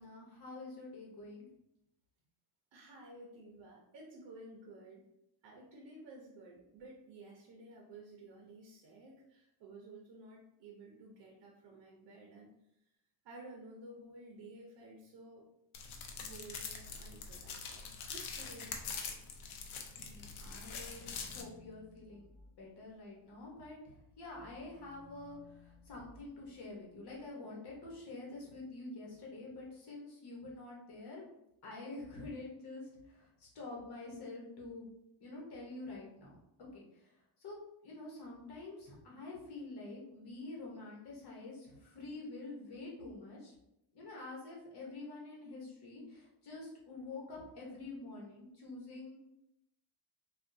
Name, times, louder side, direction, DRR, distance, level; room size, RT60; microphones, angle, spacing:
voice 1, 0.0-1.5 20.0-22.3 22.6-31.2 31.6-34.9 35.2-36.4 36.7-37.1 37.4-37.6 37.8-43.5 43.9-49.2, left 2 dB, 55° left, -3 dB, 1.2 m, -47 dB
voice 2, 2.7-5.1 5.4-12.5 13.2-15.4 16.2-19.1, right 2 dB, 60° right, -1 dB, 0.7 m, -53 dB
sound 1, 15.7-21.4, left 5 dB, 85° left, 0.7 m, -44 dB
sound 2, 19.6-23.5 23.9-27.3, left 4 dB, 5° left, 1.1 m, -62 dB
3.4 x 2.4 x 2.6 m, 0.83 s
cardioid pair, 150°, 46 cm